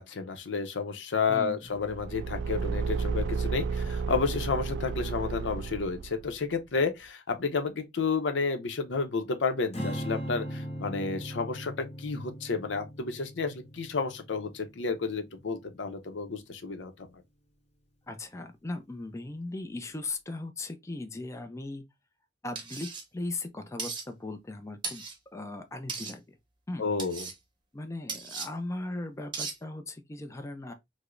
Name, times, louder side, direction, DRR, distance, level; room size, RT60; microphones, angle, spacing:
voice 1, 0.0-17.1 26.8-27.3, left 4 dB, 90° left, 0.6 m, -31 dB
Car / Engine, 1.8-6.3, right 5 dB, 75° right, 0.3 m, -32 dB
Strum, 9.7-16.1, equal, 35° left, 1.0 m, -39 dB
voice 2, 18.1-21.8 22.4-25.0 25.3-26.4 26.7-26.8 27.7-30.7, left 2 dB, 15° left, 0.4 m, -38 dB
sound 1, 22.6-23.0 23.8-24.0 24.8-25.2 25.9-26.1 27.0-27.3 28.1-28.5 29.3-29.6, right 4 dB, 25° right, 0.8 m, -36 dB
4.7 x 2.0 x 2.5 m
head